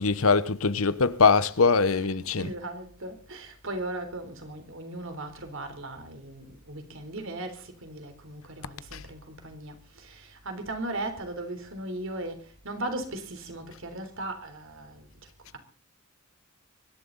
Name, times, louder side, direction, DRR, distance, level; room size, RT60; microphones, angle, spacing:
voice 1, 0.0-2.5 8.9-9.0, left 4 dB, 70° left, 0.9 m, -22 dB
voice 2, 2.4-15.1, right 2 dB, 60° right, 3.6 m, -37 dB
24.0 x 11.5 x 4.0 m
head